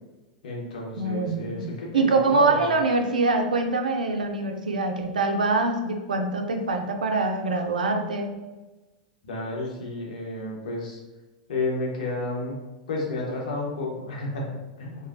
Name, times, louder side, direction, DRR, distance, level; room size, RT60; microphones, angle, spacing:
voice 1, 0.4-2.7 9.2-11.0 11.5-12.6 12.9-15.1, left 2 dB, 70° left, -2 dB, 0.8 m, -31 dB
voice 2, 1.0-8.4, right 3 dB, 85° right, 4 dB, 0.4 m, -24 dB
3.0 x 2.1 x 2.6 m, 1.1 s
hypercardioid pair, 105°, 4 cm